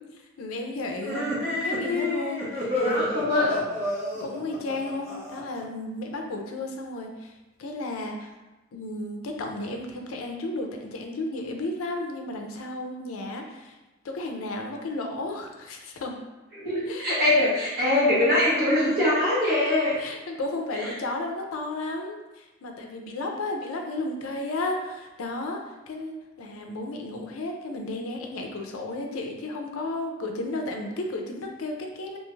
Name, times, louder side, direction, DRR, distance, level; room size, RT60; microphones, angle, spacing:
voice 1, 0.4-3.5 4.2-7.3 7.6-8.4 8.7-13.8 14.0-16.2 16.9-17.2 20.0-32.2, left 2 dB, 85° left, 3 dB, 0.4 m, -33 dB
sound 1, 1.0-5.6, left 1 dB, 30° right, 0.8 m, -29 dB
voice 2, 2.8-3.5 16.6-19.9, left 1 dB, 50° right, -9 dB, 1.2 m, -23 dB
2.8 x 2.3 x 3.0 m, 1.1 s
head